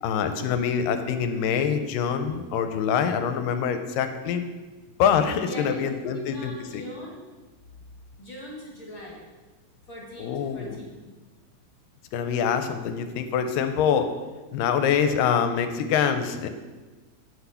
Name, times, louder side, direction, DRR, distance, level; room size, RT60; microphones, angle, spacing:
voice 1, 0.0-4.4 5.0-6.5 10.2-10.8 12.1-14.1 14.5-16.5, left 7 dB, 85° left, 8 dB, 2.2 m, -25 dB
voice 2, 5.5-5.8 6.1-7.2 8.2-9.2 9.9-11.0, left 1 dB, 45° left, -3 dB, 1.8 m, -41 dB
8.2 x 6.1 x 5.6 m, 1.3 s
omnidirectional pair, 4.0 m